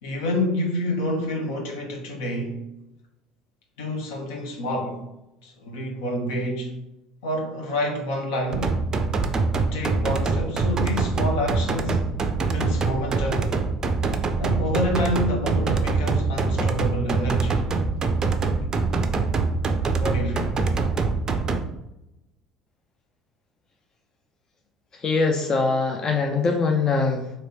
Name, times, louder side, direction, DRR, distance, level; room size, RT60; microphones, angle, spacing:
voice 1, 0.0-2.6 3.8-5.0 5.4-6.7 7.2-8.8 9.6-12.0 12.5-13.5 14.4-17.6 20.0-20.6, left 1 dB, 65° left, 0.9 m, -28 dB
sound 1, 8.5-21.6, right 4 dB, 30° right, 0.4 m, -24 dB
voice 2, 24.9-27.3, left 4 dB, 30° left, 0.5 m, -22 dB
3.1 x 2.9 x 4.3 m
figure-of-eight pair, 60°, 2 cm